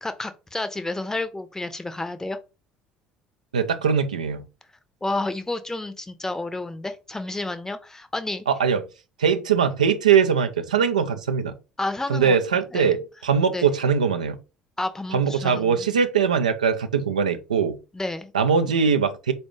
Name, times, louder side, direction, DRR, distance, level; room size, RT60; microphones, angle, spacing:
voice 1, 0.0-2.4 5.0-8.5 11.8-12.4 12.7-12.9 13.5-13.7 14.8-15.8 17.9-18.3, left 2 dB, 10° left, 0.6 m, -30 dB
voice 2, 3.5-4.4 8.5-8.8 9.2-11.6 12.1-14.4 15.1-17.8 18.3-19.3, right 6 dB, 80° right, 0.4 m, -21 dB
4.0 x 2.3 x 3.1 m
figure-of-eight pair, 55°, 4 cm